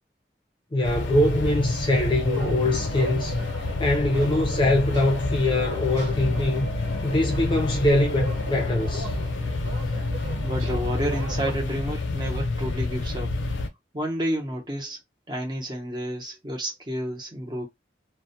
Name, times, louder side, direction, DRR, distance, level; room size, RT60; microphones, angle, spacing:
voice 1, 0.7-3.4 3.8-6.7 7.0-9.1, left 1 dB, 25° left, 0.5 m, -23 dB
sound 1, 0.8-13.7, left 3 dB, 85° left, 0.5 m, -28 dB
sound 2, 2.2-11.5, right 2 dB, 75° right, 1.2 m, -38 dB
voice 2, 10.4-13.3 13.9-15.0 15.3-17.7, equal, 25° right, 0.7 m, -30 dB
2.2 x 2.1 x 2.7 m
head